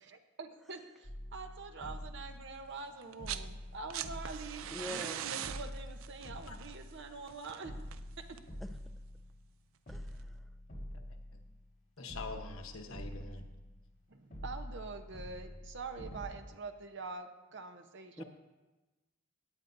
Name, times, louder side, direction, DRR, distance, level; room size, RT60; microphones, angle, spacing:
voice 1, 0.0-7.7 8.2-8.4 14.1-18.2, right 4 dB, 60° right, 6 dB, 0.8 m, -45 dB
sound 1, 1.0-2.9 3.2-5.1 5.4-7.3 7.6-9.6 9.9-11.8 12.1-14.0 14.3-16.3, equal, 40° left, 4.0 m, -46 dB
sound 2, 3.0-3.5 3.7-8.6 9.9-10.0, right 10 dB, 85° right, 0.4 m, -42 dB
voice 2, 4.7-5.3 8.6-8.8 9.9-10.4 18.2-18.3, left 1 dB, ahead, 7 dB, 0.4 m, -44 dB
voice 3, 12.0-13.5 18.2-18.3, left 3 dB, 90° left, 5 dB, 1.0 m, -44 dB
17.5 x 9.1 x 2.6 m, 1.2 s
head